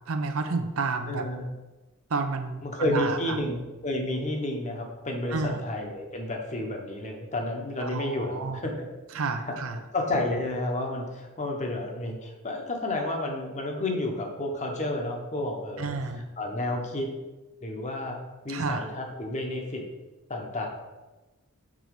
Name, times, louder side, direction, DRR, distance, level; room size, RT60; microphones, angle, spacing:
voice 1, 0.1-1.3 2.1-3.4 5.3-5.6 7.8-8.6 9.1-9.8 15.8-16.2 18.5-18.9, right 4 dB, 65° right, 7 dB, 0.6 m, -30 dB
voice 2, 1.1-1.5 2.6-8.9 9.2-9.5 9.9-15.9 16.4-17.1 17.6-18.2 18.4-19.8 20.3-20.7, left 1 dB, 35° left, 2 dB, 1.0 m, -31 dB
6.2 x 4.0 x 4.8 m, 1.1 s
head